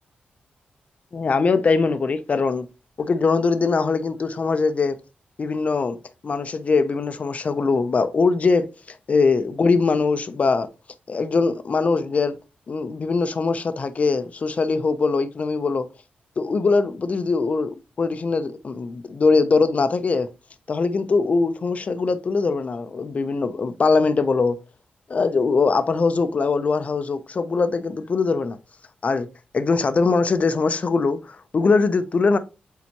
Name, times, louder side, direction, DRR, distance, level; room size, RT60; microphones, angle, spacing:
voice 1, 1.1-2.6 3.0-5.0 5.4-6.0 6.2-10.7 11.1-12.4 12.7-15.9 16.4-20.3 20.7-24.6 25.1-28.6 29.0-29.3 29.5-32.4, left 4 dB, 45° left, 0.8 m, -21 dB
8.3 x 4.1 x 3.0 m
wide cardioid pair, 110°, 3 cm